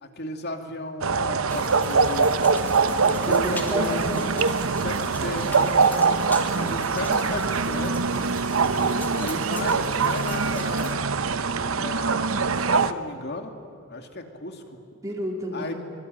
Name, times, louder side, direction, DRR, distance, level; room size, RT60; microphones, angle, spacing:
voice 1, 0.0-2.3 3.1-4.5 4.8-6.1 6.5-7.9 9.1-11.0 11.8-13.5 13.9-14.8 15.5-15.7, left 2 dB, 50° left, 5 dB, 2.6 m, -34 dB
sound 1, 1.0-12.9, right 4 dB, 70° right, 0.9 m, -23 dB
sound 2, 1.5-10.9, left 1 dB, 10° left, 2.9 m, -42 dB
voice 2, 3.3-4.1 6.5-6.8 8.5-9.0 15.0-15.7, equal, 15° right, -2 dB, 3.5 m, -32 dB
25.0 x 24.0 x 9.2 m, 2.6 s
head